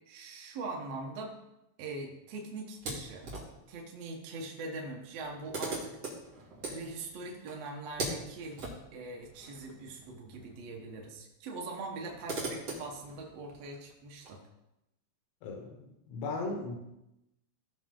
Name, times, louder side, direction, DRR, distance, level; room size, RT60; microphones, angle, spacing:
voice 1, 0.1-1.3 1.8-3.3 3.7-5.9 6.7-14.4, right 3 dB, 75° right, 0 dB, 1.5 m, -42 dB
sound 1, 2.7-3.7 4.8-4.9 5.1-10.6 10.9-11.0 11.8-14.3, right 2 dB, 40° right, 3.2 m, -41 dB
voice 2, 15.4-15.8 16.1-16.8, left 3 dB, 85° left, 1 dB, 3.6 m, -36 dB
16.5 x 6.4 x 3.8 m, 0.90 s
omnidirectional pair, 5.0 m